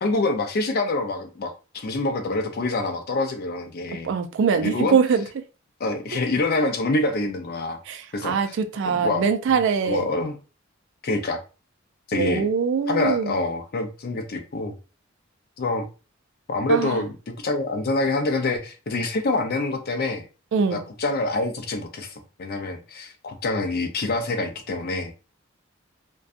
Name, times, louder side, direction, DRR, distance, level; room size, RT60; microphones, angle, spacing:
voice 1, 0.0-4.1 4.5-5.0 5.8-7.8 8.1-8.6 8.8-9.3 9.8-10.4 11.0-11.4 12.1-12.5 12.9-14.7 15.6-15.9 16.5-20.3 20.7-25.1, left 2 dB, 50° left, 0.5 m, -26 dB
voice 2, 4.0-5.2 7.9-10.1 12.1-13.3 16.7-17.0 20.5-20.8, right 6 dB, 60° right, 0.3 m, -23 dB
2.6 x 2.2 x 2.4 m
head